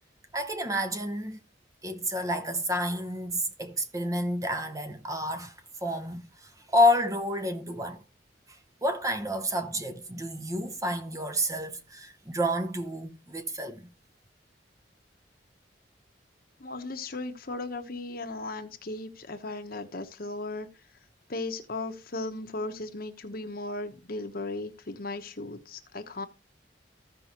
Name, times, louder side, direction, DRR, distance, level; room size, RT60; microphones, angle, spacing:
voice 1, 0.3-1.4 1.8-5.5 5.8-6.2 6.7-8.0 8.8-13.9, left 1 dB, 20° right, 0.8 m, -29 dB
voice 2, 16.6-20.7 21.3-26.3, left 2 dB, 55° left, 1.0 m, -36 dB
15.0 x 5.4 x 3.0 m
head